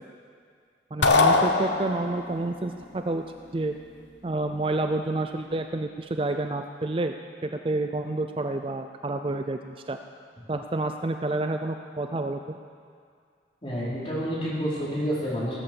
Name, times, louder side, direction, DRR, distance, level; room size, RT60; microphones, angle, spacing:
voice 1, 0.9-3.2 3.5-3.8 4.2-7.2 7.4-10.0 10.5-12.6, right 2 dB, 30° right, 6 dB, 0.4 m, -29 dB
sound 1, 1.0-2.3, left 3 dB, 90° left, 1.0 m, -21 dB
voice 2, 13.6-15.6, equal, 30° left, -8 dB, 4.4 m, -29 dB
18.5 x 8.6 x 7.0 m, 2.2 s
head